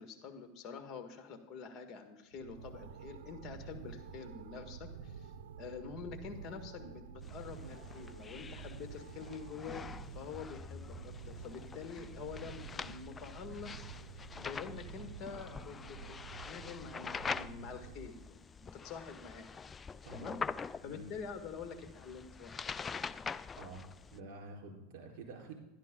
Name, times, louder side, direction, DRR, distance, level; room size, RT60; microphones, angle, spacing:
voice 1, 0.0-5.3 5.6-14.1 14.3-16.2 16.4-19.5 20.1-20.4 20.8-22.6, left 5 dB, 40° left, 8 dB, 1.6 m, -47 dB
sound 1, 2.3-18.3, right 6 dB, 85° right, 0.6 m, -50 dB
sound 2, 7.2-24.2, left 5 dB, 20° left, 0.3 m, -45 dB
voice 2, 23.6-25.5, right 3 dB, 60° right, 1 dB, 3.9 m, -49 dB
11.5 x 11.0 x 3.7 m, 0.98 s
supercardioid pair, 115°, 0 cm